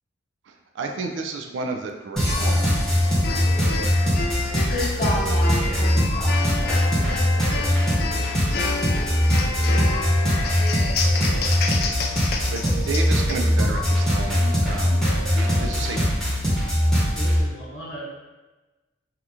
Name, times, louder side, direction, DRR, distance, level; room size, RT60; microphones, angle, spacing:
voice 1, 0.5-2.3 3.8-3.9 6.9-8.1 12.5-15.0 15.3-16.0, right 3 dB, 70° right, 4 dB, 0.3 m, -32 dB
sound 1, 2.2-17.4, equal, ahead, 0.8 m, -21 dB
sound 2, 2.3-14.0, left 4 dB, 55° left, 0.3 m, -30 dB
voice 2, 4.7-6.8, left 1 dB, 35° left, -11 dB, 0.7 m, -31 dB
voice 3, 15.1-16.0 17.1-18.1, right 1 dB, 85° left, -7 dB, 0.8 m, -38 dB
2.9 x 2.4 x 3.5 m, 1.2 s
head